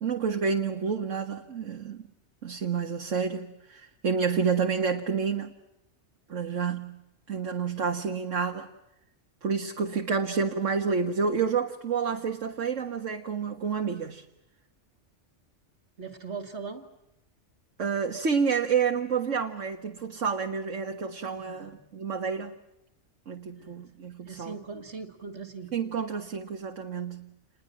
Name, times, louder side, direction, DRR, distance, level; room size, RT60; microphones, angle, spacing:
voice 1, 0.0-2.1 2.4-5.5 6.3-7.0 7.3-8.7 9.4-14.2 17.8-22.5 23.3-24.6 25.7-27.3, right 6 dB, 90° right, 1.9 m, -29 dB
voice 2, 16.0-16.9 21.4-21.8 23.6-23.8 24.3-25.7, right 4 dB, 65° right, 2.5 m, -40 dB
29.0 x 21.0 x 7.7 m
omnidirectional pair, 1.2 m